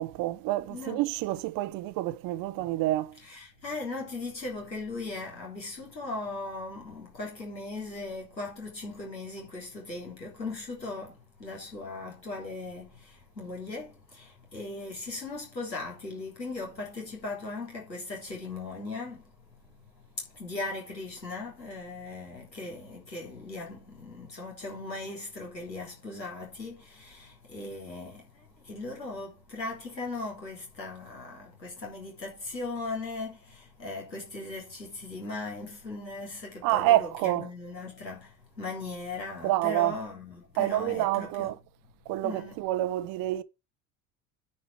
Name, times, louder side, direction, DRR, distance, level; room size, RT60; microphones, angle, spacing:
voice 1, 0.0-3.2 36.6-37.5 39.4-40.0 40.6-41.6 42.1-43.4, right 15 dB, 45° right, 0.8 m, -28 dB
voice 2, 0.7-1.0 3.2-11.2 11.4-13.0 13.4-19.2 20.4-28.2 28.7-38.3 38.6-41.5 42.2-42.6, left 3 dB, 85° left, 3.5 m, -38 dB
9.5 x 5.1 x 5.8 m
figure-of-eight pair, 65°, 49 cm